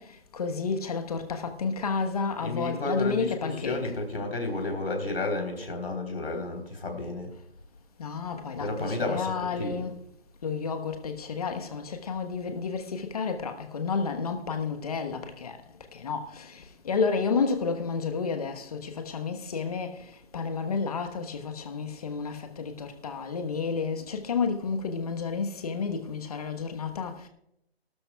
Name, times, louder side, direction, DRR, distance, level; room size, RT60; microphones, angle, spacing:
voice 1, 0.0-4.0 8.0-10.0 10.4-27.3, left 5 dB, 35° left, 1.2 m, -31 dB
voice 2, 2.4-7.3 8.6-9.9, left 2 dB, 65° left, 3.6 m, -32 dB
19.5 x 12.0 x 2.3 m
figure-of-eight pair, 155°, 33 cm